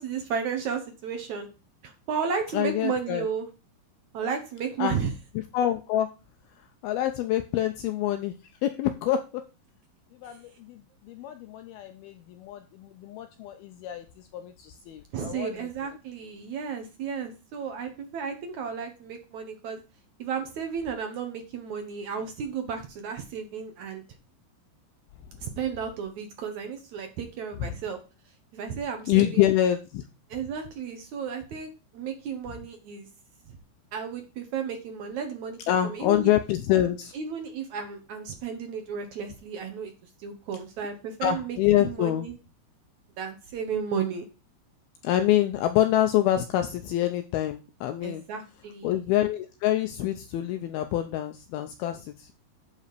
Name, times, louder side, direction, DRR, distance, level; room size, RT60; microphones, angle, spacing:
voice 1, 0.0-1.5 1.8-3.5 4.1-5.1 10.2-10.4 15.1-19.8 20.2-24.0 25.4-28.0 28.5-29.5 30.3-33.1 33.5-33.6 33.9-36.3 37.1-39.9 40.2-42.3 43.2-44.3 48.0-49.0, right 6 dB, 75° right, 5 dB, 1.7 m, -33 dB
voice 2, 2.5-3.3 4.8-5.0 5.5-6.1 6.8-8.3 8.6-9.4 10.2-14.1 14.3-15.7 27.6-27.7 29.1-30.0 35.7-37.1 41.2-42.3 45.0-48.2 48.8-52.3, left 12 dB, 85° left, 7 dB, 2.2 m, -26 dB
9.8 x 4.2 x 6.7 m, 0.31 s
omnidirectional pair, 5.0 m